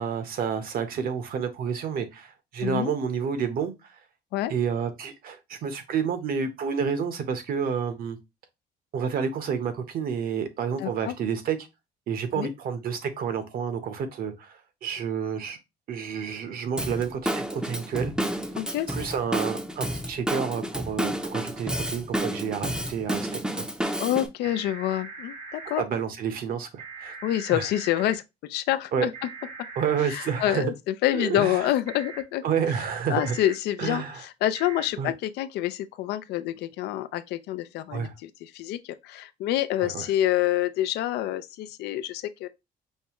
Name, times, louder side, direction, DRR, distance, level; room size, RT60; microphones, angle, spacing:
voice 1, 0.0-4.0 4.5-8.2 8.9-11.6 12.1-15.6 15.9-18.4 18.9-23.7 25.8-27.1 27.5-27.7 28.9-29.1 29.8-30.7 31.1-31.7 32.4-33.4 33.8-34.2 35.0-35.1 37.9-38.1 39.8-40.1, right 7 dB, 60° right, 0.9 m, -29 dB
voice 2, 2.6-2.9 4.3-4.5 10.8-11.1 12.4-12.5 18.6-18.9 24.0-25.8 27.2-29.1 30.1-32.4 33.1-42.5, left 13 dB, 80° left, 0.4 m, -27 dB
Drum kit / Drum, 16.8-24.3, right 1 dB, 5° right, 0.6 m, -30 dB
sound 1, 24.4-25.8 26.8-28.1 29.1-30.5 31.9-32.2 33.2-33.5 34.5-34.9, right 4 dB, 80° right, 2.2 m, -41 dB
5.3 x 2.3 x 2.9 m
cardioid pair, 110°, 17 cm